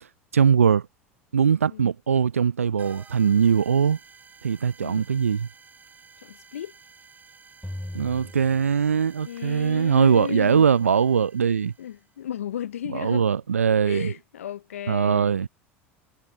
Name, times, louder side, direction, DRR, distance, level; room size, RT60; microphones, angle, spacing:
voice 1, 0.3-0.8 1.3-4.0 4.4-5.5 7.9-11.7 12.9-14.1 14.9-15.5, right 7 dB, 85° right, 0.5 m, -21 dB
sound 1, 2.8-12.2, right 5 dB, 25° right, 3.9 m, -52 dB
voice 2, 6.2-6.7 9.2-10.7 11.8-13.3 13.8-15.4, left 10 dB, 80° left, 0.5 m, -34 dB
sound 2, 7.6-9.4, left 1 dB, 5° left, 4.8 m, -39 dB
figure-of-eight pair, 75°, 7 cm